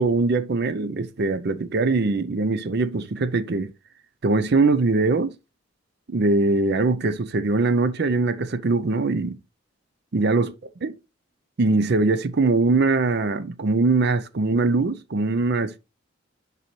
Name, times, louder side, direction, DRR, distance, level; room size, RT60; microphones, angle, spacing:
voice 1, 0.0-3.7 4.2-5.3 6.1-9.4 10.1-10.5 10.8-11.0 11.6-15.8, right 3 dB, 50° right, 0.5 m, -22 dB
10.5 x 4.1 x 3.1 m
head